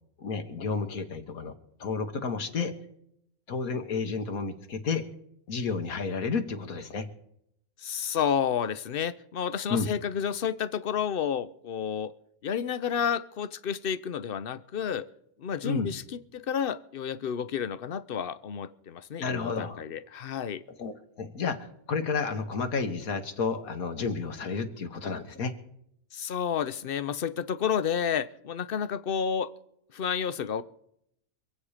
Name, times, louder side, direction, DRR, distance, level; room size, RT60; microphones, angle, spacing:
voice 1, 0.2-1.5 1.8-2.7 3.5-5.0 5.5-7.1 9.7-9.9 15.6-15.9 19.2-19.8 20.8-21.6 21.9-25.5, left 5 dB, 85° left, 1.8 m, -31 dB
voice 2, 7.8-12.1 12.4-15.1 15.4-20.6 26.1-29.5 29.9-30.6, left 8 dB, 50° left, 0.7 m, -30 dB
25.5 x 8.5 x 4.9 m
omnidirectional pair, 1.5 m